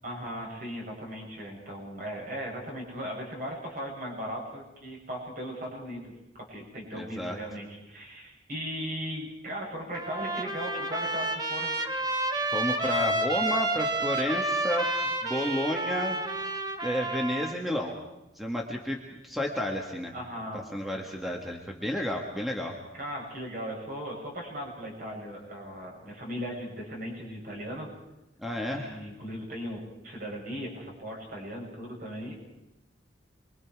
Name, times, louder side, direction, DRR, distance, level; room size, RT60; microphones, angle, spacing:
voice 1, 0.0-11.7 20.1-20.6 22.9-27.9 28.7-32.4, equal, 50° right, -2 dB, 7.7 m, -38 dB
voice 2, 6.9-7.4 12.5-14.9 15.2-16.2 16.8-18.0 18.3-20.1 20.5-22.8 28.4-29.0, left 1 dB, ahead, 0 dB, 1.8 m, -31 dB
Trumpet, 9.9-17.5, right 2 dB, 20° right, 1.7 m, -30 dB
28.0 x 22.5 x 4.8 m, 0.96 s
head